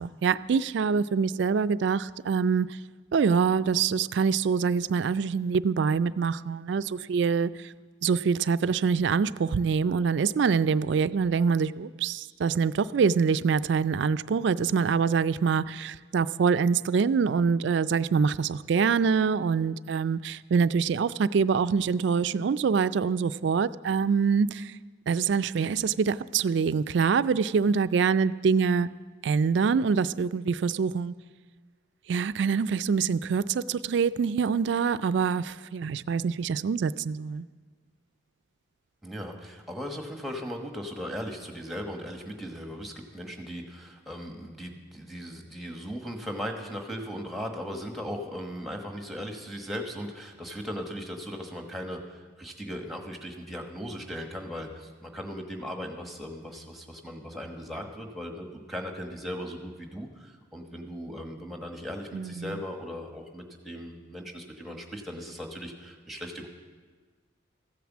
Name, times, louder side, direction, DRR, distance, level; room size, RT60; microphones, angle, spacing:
voice 1, 0.0-2.7 3.1-7.7 8.0-24.7 25.1-28.9 29.2-31.1 32.1-37.4 62.1-62.6, right 5 dB, 65° right, 15 dB, 0.3 m, -25 dB
voice 2, 39.0-66.5, equal, ahead, 3 dB, 1.2 m, -38 dB
15.0 x 9.3 x 7.3 m, 1.5 s
head